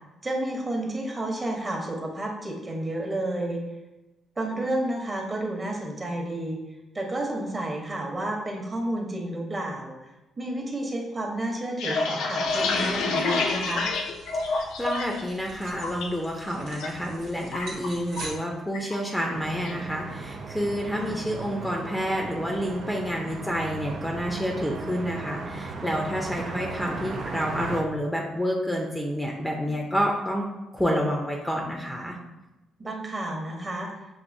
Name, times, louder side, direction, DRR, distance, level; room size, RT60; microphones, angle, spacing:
voice 1, 0.2-3.6 4.4-6.6 6.9-9.9 10.4-13.9 21.0-21.2 26.4-26.6 32.8-33.9, right 1 dB, 25° right, 0 dB, 1.0 m, -31 dB
sound 1, 11.5-15.2 15.5-16.1 16.5-16.9 17.1-18.4 18.7-19.0 19.3-19.8, left 3 dB, 85° left, 0.5 m, -28 dB
sound 2, 12.4-18.3, right 2 dB, 80° right, 1.2 m, -44 dB
voice 2, 14.5-30.5 30.7-32.2, equal, 5° left, 0 dB, 0.6 m, -29 dB
sound 3, 19.3-27.8, right 3 dB, 60° right, 0.4 m, -37 dB
6.0 x 2.7 x 2.7 m, 1.0 s
cardioid pair, 90°, 0 cm